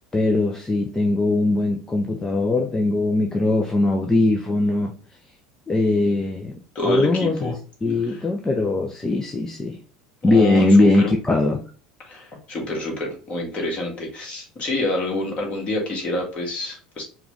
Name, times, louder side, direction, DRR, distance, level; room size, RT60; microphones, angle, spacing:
voice 1, 0.1-5.0 5.7-6.6 6.8-7.5 7.8-9.8 10.2-11.6, left 2 dB, 15° left, 0.6 m, -20 dB
voice 2, 6.8-7.5 8.1-8.2 10.3-11.1 12.1-17.0, left 2 dB, 35° left, 1.8 m, -27 dB
4.7 x 2.4 x 3.2 m
figure-of-eight pair, 75°, 4 cm